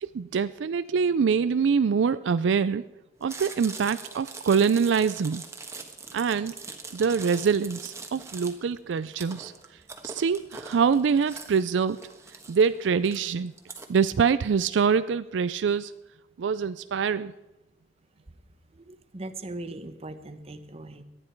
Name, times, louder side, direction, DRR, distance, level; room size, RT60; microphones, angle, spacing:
voice 1, 0.0-2.8 3.2-5.4 6.1-6.5 6.9-9.5 10.0-12.0 12.5-13.5 13.9-15.9 16.4-17.3, right 6 dB, 80° right, 14 dB, 0.4 m, -24 dB
Chewing mastication, 3.2-13.9, right 4 dB, 15° right, 1.2 m, -42 dB
voice 2, 18.7-21.0, right 2 dB, 35° right, 10 dB, 0.9 m, -39 dB
18.5 x 12.0 x 4.5 m, 1.0 s
head